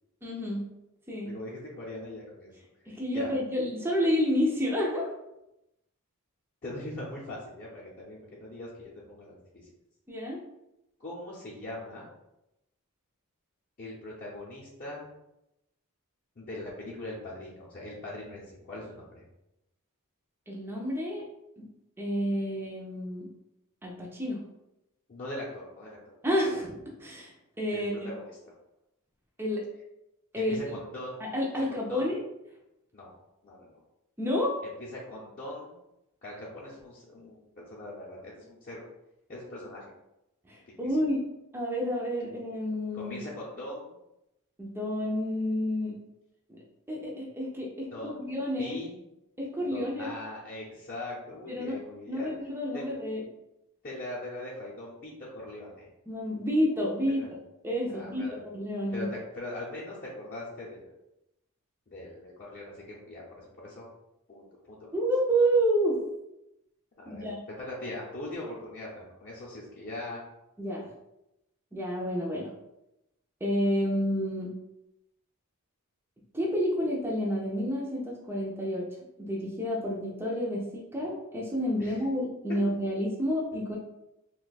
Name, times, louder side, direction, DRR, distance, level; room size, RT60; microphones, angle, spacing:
voice 1, 0.2-0.6 1.1-1.3 2.9-5.1 10.1-10.4 20.5-21.2 21.6-21.7 22.0-23.3 23.8-24.4 26.2-27.3 27.6-28.1 29.4-29.6 30.3-30.6 31.2-32.2 34.2-34.6 40.5-41.2 41.5-43.2 44.6-45.9 46.5-46.6 46.9-47.9 48.1-48.8 49.4-50.1 51.5-51.8 52.1-53.2 56.1-57.3 57.6-58.2 58.5-59.1 64.9-66.0 67.1-67.4 70.6-70.9 71.7-72.5 73.4-74.5 76.3-78.9 79.2-83.8, equal, 10° right, -3 dB, 0.5 m, -29 dB
voice 2, 1.2-2.5 2.9-3.3 6.6-9.7 11.0-12.1 13.8-15.1 16.4-19.2 25.1-26.1 27.7-28.5 30.3-31.3 31.7-32.2 32.9-33.1 33.4-33.8 34.6-35.8 36.2-38.8 39.3-39.8 42.9-44.0 47.8-49.0 49.6-52.3 52.7-53.0 53.8-55.9 57.1-57.3 57.9-58.4 58.9-59.1 59.3-60.9 61.9-63.9 64.3-64.8 67.0-70.2 81.8-82.0, left 1 dB, 40° left, -8 dB, 0.7 m, -41 dB
2.6 x 2.3 x 3.9 m, 0.89 s
head